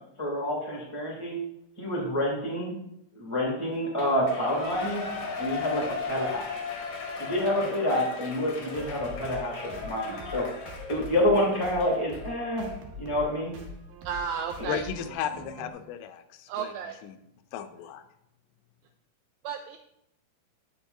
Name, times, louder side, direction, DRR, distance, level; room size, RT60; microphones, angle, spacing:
voice 1, 0.0-1.4 1.8-2.7 3.1-5.0 5.4-6.6 7.2-10.5 10.9-12.7 13.0-13.6, left 1 dB, 30° left, -3 dB, 0.5 m, -28 dB
Shout / Cheering, 3.9-12.3 12.7-12.8, left 5 dB, 70° left, 1.8 m, -37 dB
sound 1, 8.7-15.7, equal, 65° right, 2.3 m, -44 dB
voice 2, 14.1-14.8 16.5-17.0 19.4-19.8, right 7 dB, 85° right, 5 dB, 2.1 m, -33 dB
voice 3, 14.7-16.7 17.0-17.2 17.5-18.0, left 9 dB, 85° left, 8 dB, 2.6 m, -35 dB
8.6 x 6.7 x 2.6 m, 0.80 s
omnidirectional pair, 4.7 m